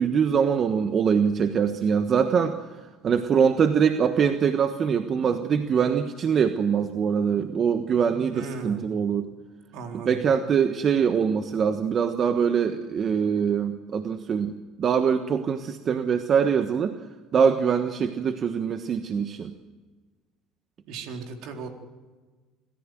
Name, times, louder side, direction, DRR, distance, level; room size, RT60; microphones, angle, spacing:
voice 1, 0.0-2.6 3.0-9.3 10.1-14.5 14.8-16.9 17.3-19.5, right 7 dB, 45° right, 8 dB, 1.3 m, -23 dB
voice 2, 8.3-8.9 9.7-10.2 20.9-21.7, right 5 dB, 70° right, 3 dB, 3.9 m, -36 dB
26.5 x 14.5 x 7.7 m, 1.3 s
supercardioid pair, 85°, 0 cm